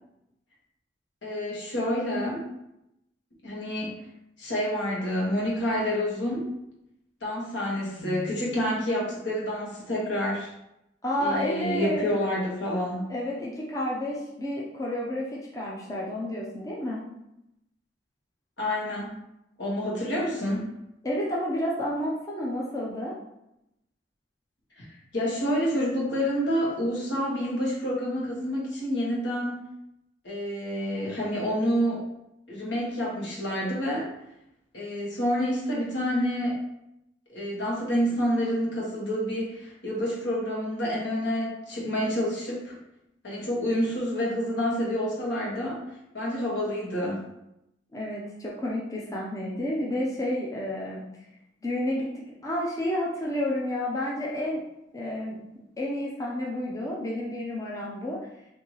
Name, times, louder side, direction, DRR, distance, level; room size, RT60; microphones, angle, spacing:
voice 1, 1.2-2.4 3.4-3.9 4.4-6.5 7.2-10.5 11.2-13.0 18.6-19.1 19.6-20.7 24.8-24.9 25.1-29.6 30.2-32.0 32.5-34.1 34.7-36.6 37.3-42.8 43.2-45.8 46.1-47.2, equal, 75° left, -4 dB, 1.3 m, -28 dB
voice 2, 11.0-12.1 13.1-17.0 21.0-23.2 47.9-51.0 51.6-52.1 52.4-54.6 54.9-55.4 55.8-58.2, left 1 dB, 20° left, -4 dB, 0.5 m, -30 dB
4.4 x 2.7 x 2.9 m, 0.85 s
head